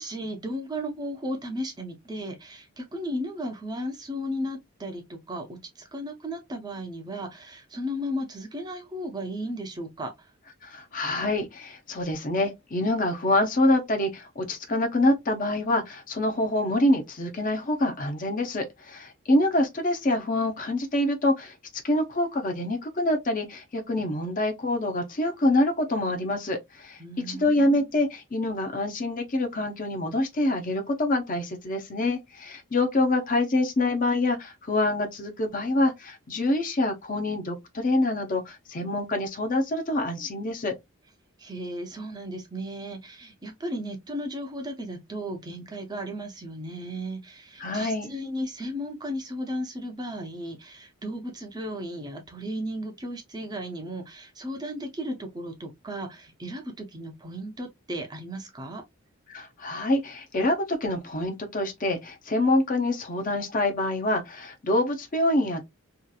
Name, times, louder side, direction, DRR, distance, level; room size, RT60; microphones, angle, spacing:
voice 1, 0.0-10.3 27.0-27.9 41.4-58.8, equal, 20° right, 0.5 m, -35 dB
voice 2, 10.6-21.5 21.8-27.0 27.3-40.7 47.6-48.1 59.3-65.6, left 1 dB, 40° left, 0.6 m, -26 dB
2.8 x 2.4 x 2.3 m
head